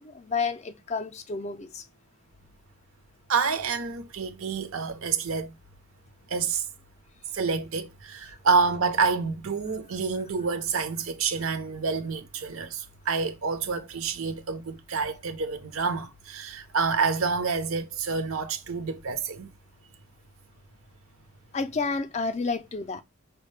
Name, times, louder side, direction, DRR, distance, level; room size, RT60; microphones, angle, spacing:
voice 1, 0.0-1.8 8.3-8.4 21.5-23.0, left 4 dB, 30° left, 0.4 m, -30 dB
voice 2, 3.3-5.5 6.3-6.6 7.3-19.5, right 5 dB, 75° right, 0.7 m, -28 dB
5.0 x 2.1 x 3.2 m
head